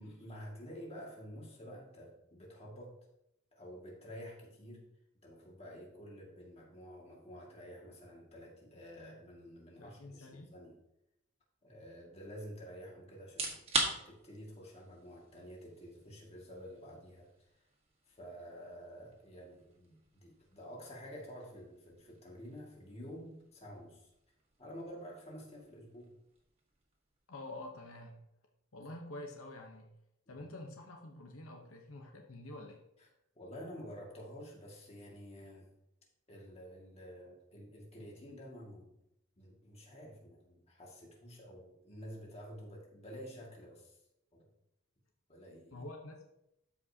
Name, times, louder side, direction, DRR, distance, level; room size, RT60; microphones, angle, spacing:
voice 1, 0.0-3.0 3.5-4.8 5.2-10.8 11.6-13.6 14.0-17.6 18.1-24.1 24.6-26.1 30.3-30.5 33.0-33.1 33.3-35.7 36.3-38.9 39.4-44.0 44.3-44.5 45.3-45.9, equal, 30° left, -2 dB, 2.0 m, -50 dB
voice 2, 9.8-10.5 27.3-28.2 28.7-29.9 30.3-32.8 45.7-46.3, left 2 dB, 75° left, 2 dB, 0.9 m, -47 dB
sound 1, 13.2-28.1, right 2 dB, 30° right, 1.6 m, -44 dB
13.0 x 5.2 x 2.8 m, 0.83 s
head